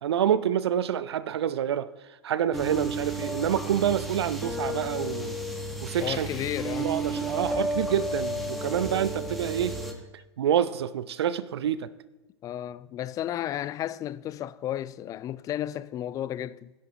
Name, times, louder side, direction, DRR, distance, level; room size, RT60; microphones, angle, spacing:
voice 1, 0.0-1.9 2.2-5.4 5.8-6.3 6.8-9.8 10.4-11.9, right 9 dB, 65° right, 0.6 m, -27 dB
sound 1, 2.5-9.9, right 1 dB, ahead, 1.4 m, -32 dB
voice 2, 6.0-6.9 12.4-16.7, left 12 dB, 25° left, 0.4 m, -33 dB
16.0 x 10.5 x 2.9 m
figure-of-eight pair, 95°, 15 cm